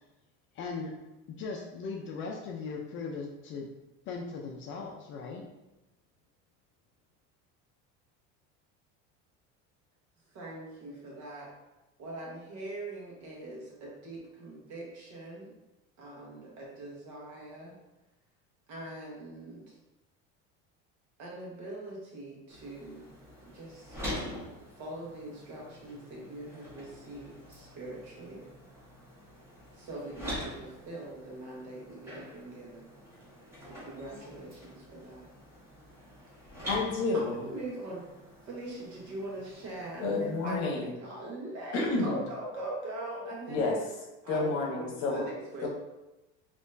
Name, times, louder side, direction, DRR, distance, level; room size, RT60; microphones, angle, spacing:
voice 1, 0.5-0.9 1.4-3.7 4.1-5.4, left 4 dB, 40° left, 0 dB, 0.4 m, -38 dB
voice 2, 10.3-11.5 12.0-15.5 16.0-17.7 18.7-19.7 21.2-23.0 23.4-24.0 24.8-28.4 29.7-32.9 33.6-35.3 37.4-38.1 38.5-43.9 44.2-45.7, right 1 dB, 55° right, -3 dB, 1.3 m, -42 dB
sound 1, 22.5-40.6, equal, 10° right, 1.2 m, -45 dB
voice 3, 36.7-37.5 40.0-41.0 41.7-42.2 43.5-43.8 44.3-45.2 45.6-45.7, left 3 dB, 60° left, 0 dB, 0.9 m, -30 dB
4.3 x 2.9 x 2.5 m, 1.0 s
cardioid pair, 160°, 32 cm